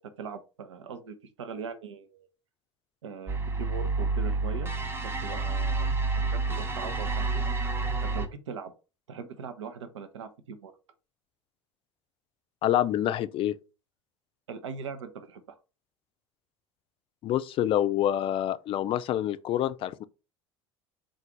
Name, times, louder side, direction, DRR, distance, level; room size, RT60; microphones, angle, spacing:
voice 1, 0.2-2.3 3.0-4.7 5.0-5.9 6.1-7.8 8.0-8.7 9.1-10.7 14.5-15.4, right 6 dB, 75° right, 0.6 m, -40 dB
sound 1, 3.3-8.3, right 3 dB, 15° right, 0.7 m, -29 dB
voice 2, 12.6-13.6 17.2-20.0, left 11 dB, 35° left, 0.4 m, -27 dB
3.8 x 2.4 x 4.4 m
figure-of-eight pair, 70°, 15 cm